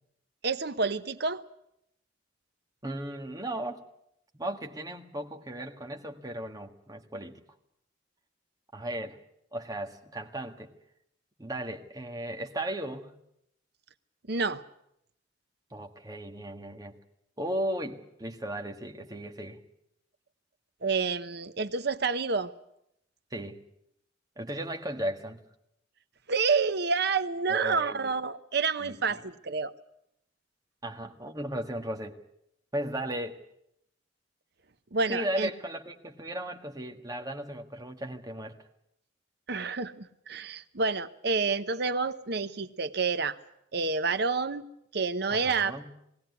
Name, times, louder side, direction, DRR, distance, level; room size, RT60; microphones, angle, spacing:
voice 1, 0.4-1.4 14.3-14.6 20.8-22.5 26.3-29.7 34.9-35.5 39.5-43.4 43.7-44.7 44.9-45.7, right 4 dB, 60° right, 12 dB, 0.9 m, -29 dB
voice 2, 2.8-3.8 4.3-7.4 8.7-9.2 9.5-10.7 11.4-13.1 15.7-16.9 17.4-19.6 23.3-23.6 24.4-25.4 27.5-28.1 28.8-29.2 30.8-32.2 32.7-33.4 35.1-38.5 45.3-45.9, right 1 dB, 20° right, 3 dB, 1.7 m, -36 dB
20.5 x 16.5 x 9.5 m, 0.78 s
head